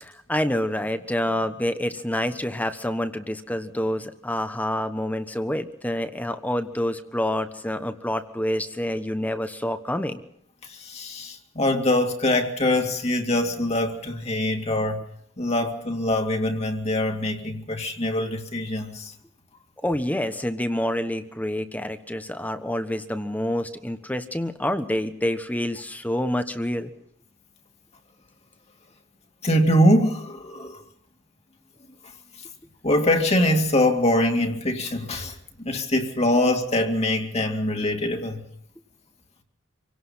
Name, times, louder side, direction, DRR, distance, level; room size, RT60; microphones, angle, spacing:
voice 1, 0.0-10.2 19.8-26.9, left 1 dB, 10° left, 1.2 m, -27 dB
voice 2, 10.6-15.0 15.4-19.1 29.4-30.8 32.8-38.4, left 1 dB, 35° left, 2.4 m, -23 dB
27.0 x 18.0 x 5.7 m
head